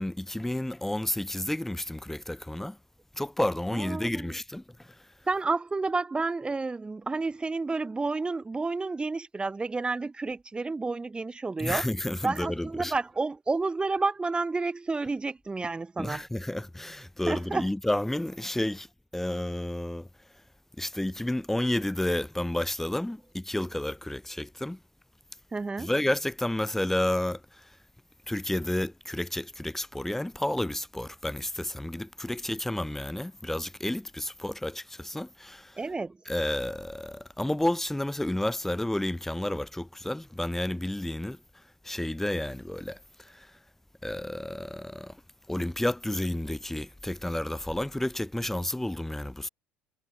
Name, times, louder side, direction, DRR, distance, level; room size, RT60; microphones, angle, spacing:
voice 1, 0.0-2.8 3.1-4.9 11.6-12.9 16.0-18.9 19.1-20.1 20.8-24.8 25.8-27.6 28.3-35.8 36.3-41.4 41.8-43.5 44.0-45.1 45.5-49.5, left 1 dB, 5° left, 1.1 m, -31 dB
voice 2, 3.7-4.4 5.3-11.8 12.2-16.2 17.3-17.7 25.5-25.9 35.8-36.2, right 3 dB, 20° right, 2.0 m, -30 dB
hypercardioid pair, 70°, 5 cm